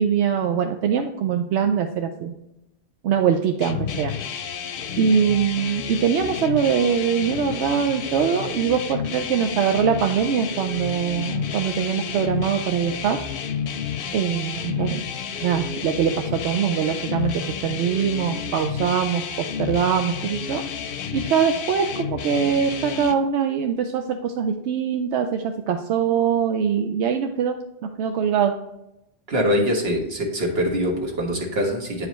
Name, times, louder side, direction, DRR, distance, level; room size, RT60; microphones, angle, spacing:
voice 1, 0.0-2.3 3.0-4.1 5.0-13.2 14.1-15.1 15.4-19.2 19.6-20.6 21.1-27.6 28.0-28.5, right 7 dB, 90° right, 5 dB, 0.9 m, -23 dB
sound 1, 3.6-23.1, left 7 dB, 60° left, 0.7 m, -31 dB
voice 2, 29.3-32.1, equal, 65° right, 1 dB, 1.6 m, -23 dB
9.3 x 4.9 x 3.0 m, 0.89 s
omnidirectional pair, 1.1 m